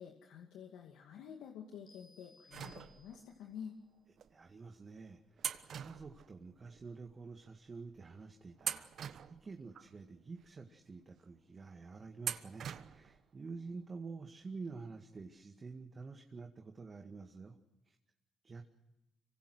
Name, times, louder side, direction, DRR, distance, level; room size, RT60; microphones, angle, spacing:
voice 1, 0.0-3.8, left 7 dB, 80° left, 2 dB, 2.4 m, -49 dB
sound 1, 1.9-3.6, left 3 dB, 45° left, 6.4 m, -64 dB
sound 2, 2.5-3.4 4.2-4.3 5.4-6.8 7.1-7.2 8.0-8.2 8.6-9.9 10.4-10.5 12.2-13.2 13.5-13.6 14.8-14.9 15.2-15.3, right 8 dB, 65° right, 1.2 m, -43 dB
voice 2, 4.3-17.6 17.9-18.0 18.4-18.6, right 4 dB, 35° right, 4 dB, 2.0 m, -49 dB
26.0 x 24.5 x 6.4 m, 0.93 s
supercardioid pair, 75°, 0 cm